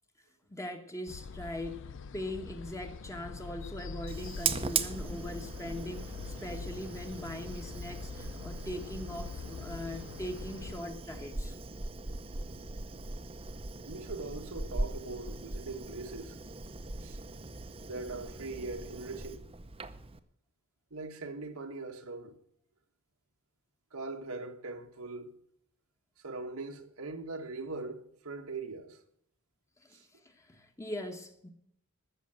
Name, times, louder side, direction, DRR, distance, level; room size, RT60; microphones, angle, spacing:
voice 1, 0.5-11.6 29.8-31.5, left 1 dB, 15° left, 1.3 m, -41 dB
sound 1, 1.1-10.8, left 5 dB, 60° left, 0.5 m, -44 dB
Fire, 4.1-20.2, right 4 dB, 25° right, 0.8 m, -39 dB
voice 2, 13.8-16.4 17.0-17.2 17.8-19.4 20.9-22.3 23.9-25.3 26.2-29.0 29.9-30.0, right 3 dB, 90° right, 1.6 m, -41 dB
14.5 x 6.8 x 8.9 m
head